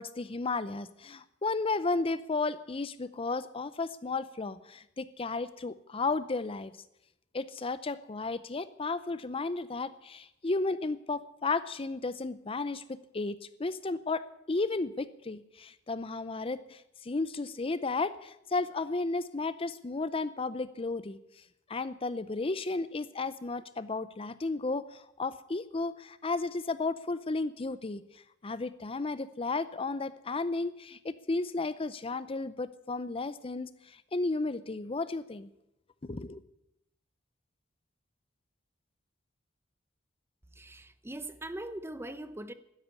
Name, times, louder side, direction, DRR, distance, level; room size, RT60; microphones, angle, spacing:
voice 1, 0.0-6.7 7.3-21.2 21.7-28.0 28.4-35.5 36.0-36.4, left 3 dB, 30° left, 0.6 m, -33 dB
voice 2, 40.5-42.5, right 1 dB, 15° right, 0.8 m, -41 dB
12.5 x 10.5 x 9.7 m
head